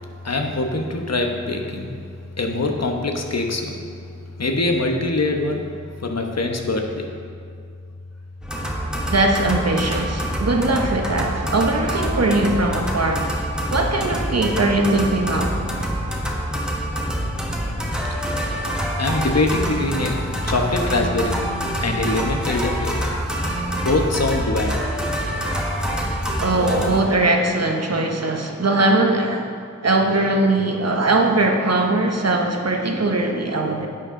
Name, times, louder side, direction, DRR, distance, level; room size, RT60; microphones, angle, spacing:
voice 1, 0.2-1.9 2.4-3.8 4.4-5.6 6.0-7.1 18.1-21.4 21.8-24.8 26.2-26.4, left 2 dB, 55° left, 3 dB, 1.1 m, -24 dB
sound 1, 8.4-27.0, equal, 5° right, 1.4 m, -26 dB
voice 2, 9.1-13.4 13.7-15.5 25.5-25.8 26.4-33.9, right 2 dB, 55° right, 2 dB, 1.1 m, -20 dB
11.0 x 7.5 x 3.8 m, 2.2 s
wide cardioid pair, 55°, 30 cm